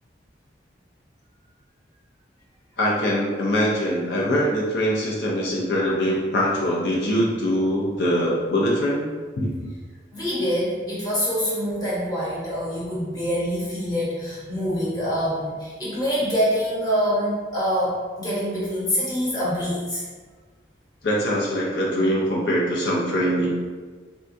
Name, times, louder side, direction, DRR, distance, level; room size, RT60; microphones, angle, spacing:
voice 1, 2.8-9.0 9.4-9.7 21.0-23.7, equal, 70° left, -4 dB, 0.5 m, -23 dB
voice 2, 10.1-20.0, equal, 20° left, -7 dB, 0.9 m, -25 dB
3.7 x 2.2 x 2.6 m, 1.4 s
head